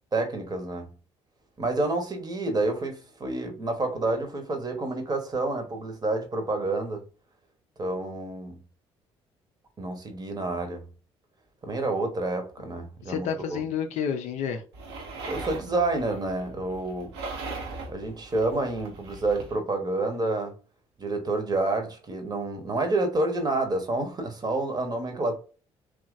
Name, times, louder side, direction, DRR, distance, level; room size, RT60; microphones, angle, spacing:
voice 1, 0.1-0.9 1.6-7.0 7.8-8.6 9.8-10.8 11.6-13.6 15.3-17.2 17.9-20.5 21.0-25.4, right 2 dB, 30° right, 0.8 m, -29 dB
voice 2, 13.1-14.6, left 7 dB, 55° left, 0.4 m, -29 dB
sound 1, 14.7-19.6, right 3 dB, 75° right, 0.7 m, -39 dB
2.9 x 2.4 x 2.4 m
figure-of-eight pair, 45°, 14 cm